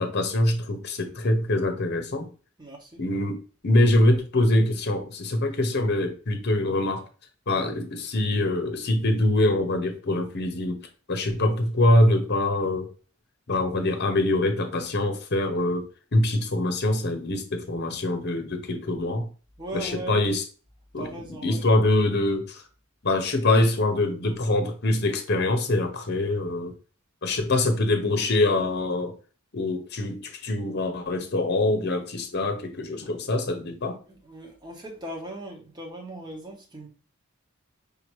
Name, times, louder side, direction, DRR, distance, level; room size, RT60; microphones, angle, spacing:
voice 1, 0.0-2.3 3.0-7.1 7.5-10.8 11.1-12.9 13.5-15.9 16.1-19.3 19.7-20.4 20.9-21.1 21.4-22.6 23.0-26.7 27.2-29.1 29.5-34.0, left 1 dB, 50° left, 0.9 m, -24 dB
voice 2, 2.6-3.0 19.6-20.3 21.0-21.6 34.0-36.9, right 1 dB, 20° right, 1.2 m, -38 dB
5.1 x 2.8 x 3.1 m
head